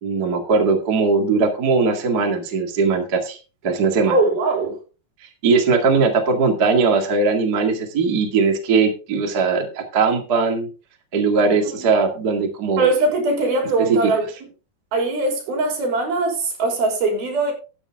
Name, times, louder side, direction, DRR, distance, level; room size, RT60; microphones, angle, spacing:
voice 1, 0.0-3.4 3.6-4.2 5.4-10.7 11.1-12.9 13.9-14.0, right 4 dB, 35° right, 1.7 m, -19 dB
voice 2, 4.1-4.8 11.7-11.9 12.8-14.2 14.9-17.5, right 2 dB, 70° right, 5.3 m, -21 dB
13.5 x 8.9 x 3.6 m
omnidirectional pair, 4.6 m